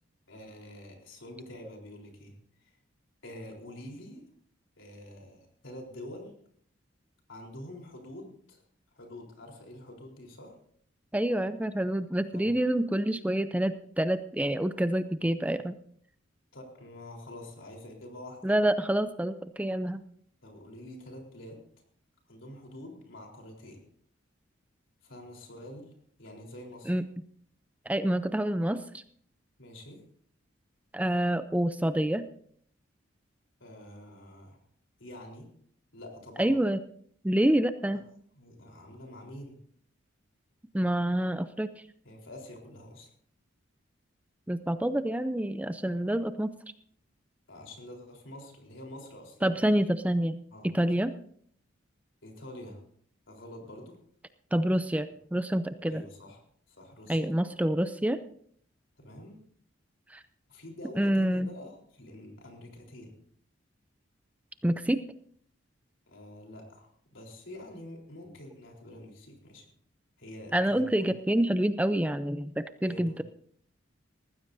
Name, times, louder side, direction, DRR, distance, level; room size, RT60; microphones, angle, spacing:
voice 1, 0.3-2.7 3.2-4.3 4.8-6.4 7.3-8.6 8.9-10.6 12.3-12.5 16.5-18.5 20.4-21.6 22.3-23.8 25.0-25.9 26.2-27.0 29.6-30.0 33.6-34.6 35.0-35.5 35.9-36.6 37.9-38.0 38.4-39.6 42.0-43.1 47.5-49.7 50.5-50.7 52.2-52.8 53.3-54.0 55.9-56.4 56.7-57.4 59.0-59.4 60.5-63.2 66.1-69.7 70.2-71.1 72.9-73.2, left 1 dB, 75° left, 1 dB, 3.9 m, -46 dB
voice 2, 11.1-15.8 18.4-20.0 26.9-27.0 27.9-29.0 30.9-32.2 36.4-36.8 37.2-38.0 40.7-41.7 44.5-46.5 49.4-50.4 50.6-51.1 54.5-56.0 57.1-58.2 60.1-60.2 61.0-61.5 64.6-65.0 70.5-73.2, right 1 dB, 5° right, 11 dB, 0.4 m, -27 dB
19.5 x 15.0 x 2.7 m, 0.62 s
head